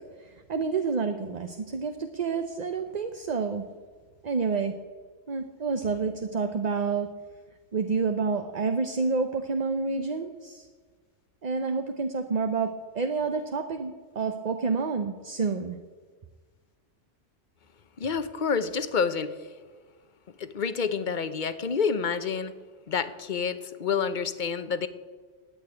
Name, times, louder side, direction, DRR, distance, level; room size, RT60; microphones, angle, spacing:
voice 1, 0.2-3.7 4.2-4.8 5.3-7.1 7.7-10.7 11.4-15.8, right 4 dB, 40° right, 7 dB, 0.8 m, -29 dB
voice 2, 18.0-19.5 20.4-22.5 22.9-24.9, left 6 dB, 45° left, 12 dB, 0.9 m, -28 dB
13.0 x 8.7 x 9.7 m, 1.5 s
omnidirectional pair, 1.3 m